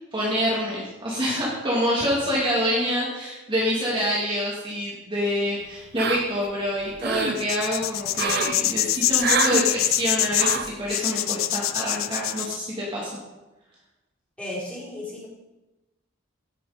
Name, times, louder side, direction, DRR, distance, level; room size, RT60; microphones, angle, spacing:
voice 1, 0.1-13.2, equal, 25° right, -6 dB, 2.5 m, -26 dB
sound 1, 6.0-6.5 6.8-7.4 8.1-8.6 9.2-9.7 10.4-10.7, right 5 dB, 50° right, 0.8 m, -26 dB
sound 2, 7.4-12.6, left 14 dB, 80° left, 0.5 m, -24 dB
voice 2, 14.4-15.3, left 1 dB, 5° left, -9 dB, 4.9 m, -34 dB
16.5 x 6.9 x 5.1 m, 1.1 s
head